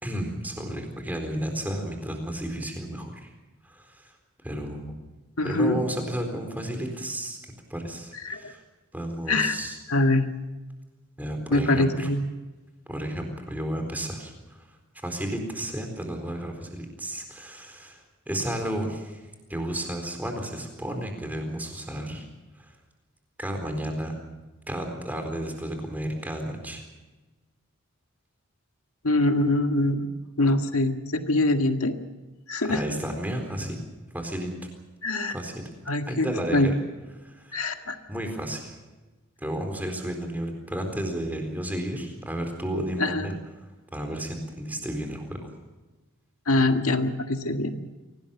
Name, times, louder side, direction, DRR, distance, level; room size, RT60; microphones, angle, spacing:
voice 1, 0.0-3.3 3.6-4.1 4.4-4.9 5.4-7.4 7.7-8.6 8.9-9.8 11.2-12.1 12.9-14.7 15.0-22.3 22.6-22.8 23.4-24.1 24.7-26.8 32.6-33.8 34.1-34.5 35.3-35.6 36.1-36.8 37.2-37.8 38.1-38.7 39.4-43.4 43.9-45.5, right 1 dB, 10° right, 4 dB, 4.1 m, -32 dB
voice 2, 5.4-5.8 8.2-8.5 9.3-9.6 9.9-10.3 11.5-12.3 29.0-30.1 30.4-31.9 32.5-32.8 35.0-35.4 35.9-36.8 37.5-38.0 43.0-43.3 46.5-47.8, left 2 dB, 80° left, 6 dB, 1.9 m, -24 dB
24.5 x 18.5 x 7.3 m, 1.2 s
head